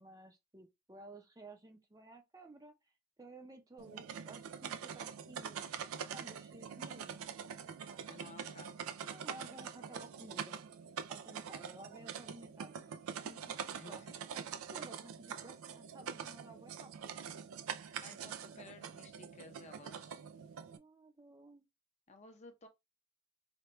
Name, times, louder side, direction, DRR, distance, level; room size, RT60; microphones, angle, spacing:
voice 1, 0.0-2.7 3.2-7.3 9.0-10.7 11.1-12.9 13.2-14.0 14.3-17.1 20.8-21.7, right 2 dB, 20° right, 0.5 m, -55 dB
sound 1, 3.8-20.8, right 7 dB, 90° right, 0.4 m, -45 dB
voice 2, 8.1-9.0 13.7-14.1 18.0-20.2 22.1-22.7, left 3 dB, 35° left, 0.6 m, -55 dB
4.3 x 2.2 x 3.0 m
head